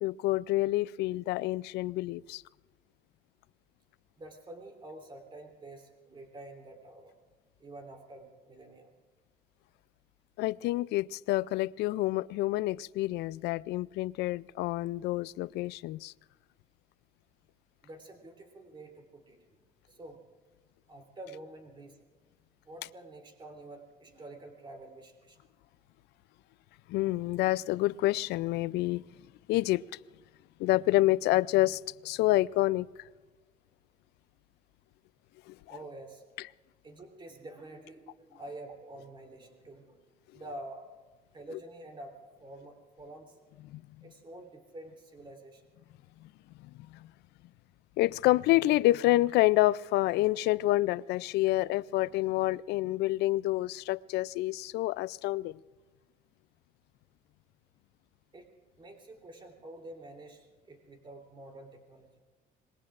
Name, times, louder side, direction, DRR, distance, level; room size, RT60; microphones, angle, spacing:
voice 1, 0.0-2.4 10.4-16.1 26.9-29.0 29.5-29.8 30.6-32.9 35.5-35.6 43.6-43.8 48.0-55.6, left 17 dB, 80° left, 0.4 m, -28 dB
voice 2, 4.2-7.1 7.6-8.9 17.8-19.4 19.9-20.2 20.9-22.0 22.6-25.4 35.7-36.2 36.8-40.0 40.3-40.8 41.3-43.4 44.0-45.6 58.3-58.5 58.8-62.1, right 1 dB, 30° right, 3.2 m, -48 dB
26.5 x 21.5 x 2.5 m
cardioid pair, 110°, 17 cm